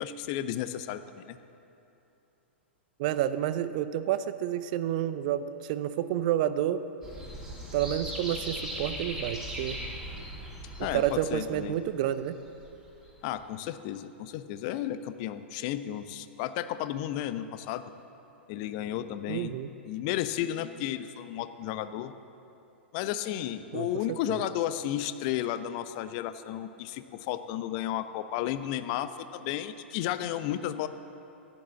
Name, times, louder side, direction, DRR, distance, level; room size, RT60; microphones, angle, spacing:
voice 1, 0.0-1.4 10.8-11.8 13.2-17.8 18.5-19.5 19.8-22.1 22.9-30.9, left 12 dB, 40° left, 12 dB, 0.7 m, -33 dB
voice 2, 3.0-6.8 7.7-9.8 10.8-12.4 19.3-19.7 23.7-23.9 24.3-24.4, right 11 dB, 40° right, 13 dB, 0.5 m, -29 dB
sound 1, 7.0-11.8 12.5-13.1 13.4-13.5, equal, 5° right, 3.0 m, -39 dB
13.5 x 10.5 x 7.3 m, 2.8 s
figure-of-eight pair, 105°, 6 cm